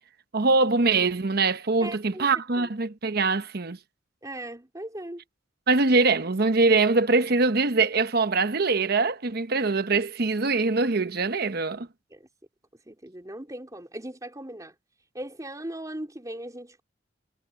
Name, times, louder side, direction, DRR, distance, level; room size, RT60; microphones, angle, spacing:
voice 1, 0.3-3.8 5.7-11.9, right 3 dB, 55° right, 1.0 m, -23 dB
voice 2, 1.8-2.3 2.6-2.7 4.2-5.2 12.1-12.3 12.9-14.7 15.1-16.8, right 1 dB, 20° right, 3.6 m, -38 dB
head